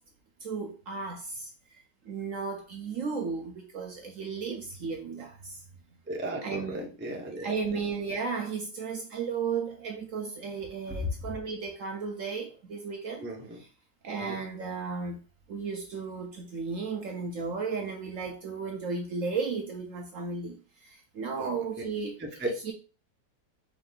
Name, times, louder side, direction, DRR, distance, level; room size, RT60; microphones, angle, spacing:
voice 1, 0.4-5.6 6.4-6.9 7.4-13.3 13.5-13.7 14.0-15.2 15.5-22.4 22.6-22.7, right 5 dB, 65° right, 0.8 m, -34 dB
voice 2, 6.1-7.5 10.9-11.0 13.2-13.6 14.2-14.4 21.4-21.6 22.2-22.5, right 2 dB, 15° right, 0.4 m, -36 dB
4.7 x 2.5 x 3.8 m
omnidirectional pair, 1.9 m